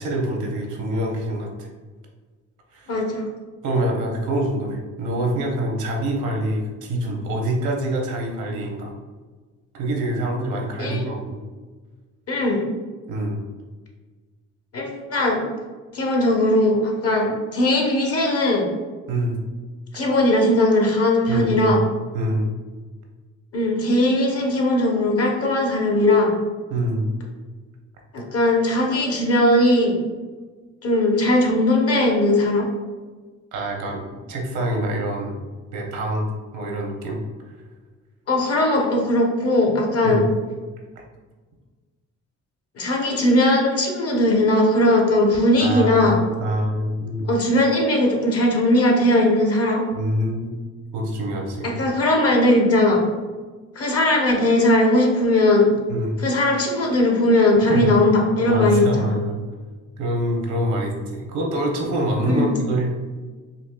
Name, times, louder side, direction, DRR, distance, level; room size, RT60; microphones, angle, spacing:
voice 1, 0.0-1.7 2.7-3.0 3.6-8.9 9.7-11.4 13.1-13.4 19.1-19.4 21.3-21.8 22.1-22.5 26.7-27.1 33.5-34.0 34.3-35.4 35.7-37.2 40.0-40.2 45.6-47.3 49.9-50.5 50.9-51.8 55.9-56.2 57.7-57.9 58.5-59.4 60.0-62.9, right 1 dB, 75° right, 1 dB, 0.9 m, -25 dB
voice 2, 2.9-3.2 10.8-11.0 12.3-12.7 14.7-15.4 15.9-18.6 19.9-21.8 23.5-26.3 28.1-30.0 30.8-32.7 38.3-40.3 42.8-46.2 47.3-49.8 51.6-53.0 53.7-55.8 56.2-59.1 62.3-62.5, left 1 dB, 50° left, 0 dB, 0.9 m, -19 dB
4.1 x 2.7 x 2.2 m, 1.4 s
cardioid pair, 90°, 30 cm